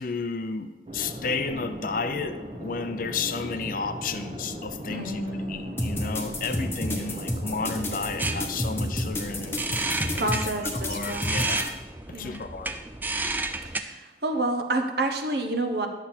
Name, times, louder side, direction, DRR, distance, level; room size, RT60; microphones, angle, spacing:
voice 1, 0.0-5.2 5.5-9.6 10.2-10.5 10.7-11.8 12.2-12.7, left 4 dB, 50° left, 10 dB, 0.5 m, -32 dB
sound 1, 0.9-10.3, equal, 30° right, 1.0 m, -38 dB
voice 2, 4.9-5.7 6.8-7.2 10.1-11.4 12.1-12.4 13.8-14.0 14.2-15.9, right 2 dB, 60° right, 5 dB, 0.9 m, -29 dB
sound 2, 5.8-11.7, left 1 dB, 15° left, 0.9 m, -30 dB
sound 3, 7.0-13.8, right 2 dB, 10° right, 0.3 m, -33 dB
10.5 x 7.1 x 4.4 m, 1.2 s
head